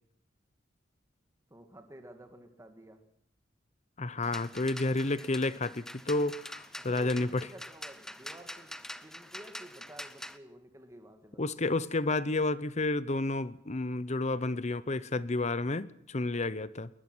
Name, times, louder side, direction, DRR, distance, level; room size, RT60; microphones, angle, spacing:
voice 1, 1.5-3.0 6.8-8.7 9.0-11.6, equal, 15° right, 2.0 m, -51 dB
voice 2, 4.0-7.4 11.4-16.9, left 2 dB, 35° left, 0.8 m, -31 dB
sound 1, 4.2-10.4, left 1 dB, 5° left, 0.8 m, -45 dB
21.0 x 21.0 x 6.3 m
head